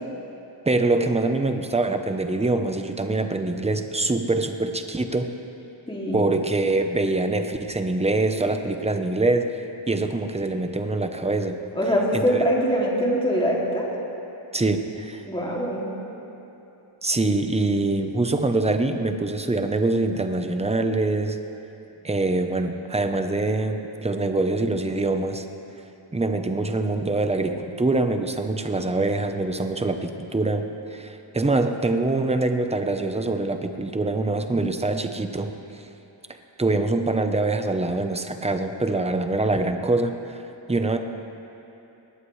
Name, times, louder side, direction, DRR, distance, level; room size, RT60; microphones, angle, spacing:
voice 1, 0.7-5.3 6.1-11.6 12.1-12.5 14.5-15.2 17.0-21.4 22.0-25.4 26.1-35.5 36.6-40.4 40.7-41.0, right 2 dB, 15° right, 6 dB, 0.8 m, -24 dB
voice 2, 5.9-6.2 11.7-13.9 15.3-15.9, equal, 10° left, -4 dB, 2.5 m, -23 dB
20.5 x 18.5 x 3.2 m, 2.9 s
wide cardioid pair, 140°, 47 cm